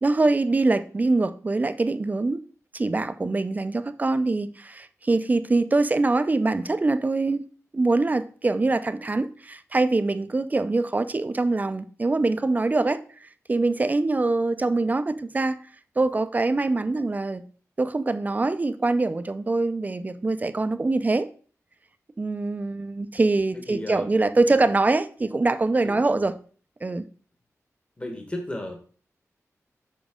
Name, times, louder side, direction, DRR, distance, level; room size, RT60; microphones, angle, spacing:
voice 1, 0.0-2.4 2.7-7.4 7.7-15.6 16.0-17.4 17.8-21.3 22.2-26.4 26.8-27.0, right 3 dB, 30° right, 0.5 m, -24 dB
voice 2, 23.5-24.1 24.5-24.6 25.8-26.2 28.0-28.7, left 1 dB, 20° left, 1.2 m, -34 dB
7.2 x 5.2 x 3.6 m
wide cardioid pair, 100°, 6 cm